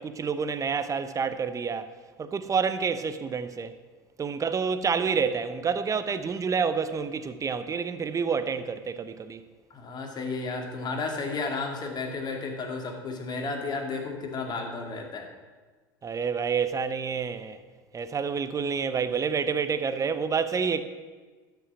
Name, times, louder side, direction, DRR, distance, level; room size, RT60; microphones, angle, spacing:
voice 1, 0.0-1.9 2.2-3.7 4.2-9.4 16.0-17.6 17.9-20.8, right 6 dB, 25° right, 0.9 m, -28 dB
voice 2, 9.7-15.3, left 3 dB, 35° left, 2.5 m, -33 dB
12.5 x 5.9 x 7.1 m
hypercardioid pair, 80°, 12 cm